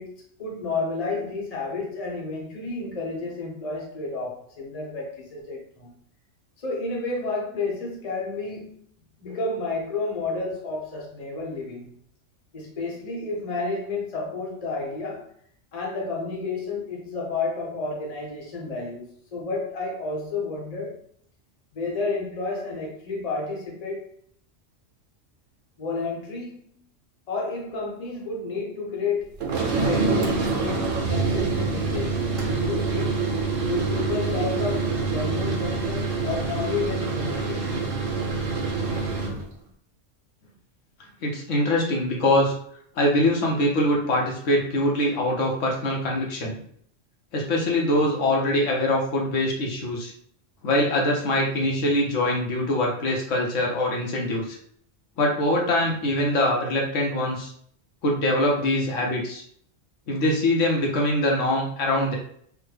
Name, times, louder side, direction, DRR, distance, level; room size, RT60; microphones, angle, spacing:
voice 1, 0.0-5.9 6.6-8.8 9.2-11.9 12.5-15.3 15.7-21.0 21.7-24.1 25.8-26.5 27.3-33.2 33.7-37.7, left 3 dB, 35° left, -2 dB, 0.8 m, -31 dB
sound 1, 29.4-39.4, right 4 dB, 85° right, 1.1 m, -26 dB
voice 2, 41.2-42.5 43.0-46.6 47.3-50.1 50.6-54.6 55.2-57.5 58.0-59.4 60.1-62.1, left 1 dB, 80° left, -1 dB, 1.2 m, -23 dB
3.5 x 2.1 x 3.2 m, 0.62 s
omnidirectional pair, 1.3 m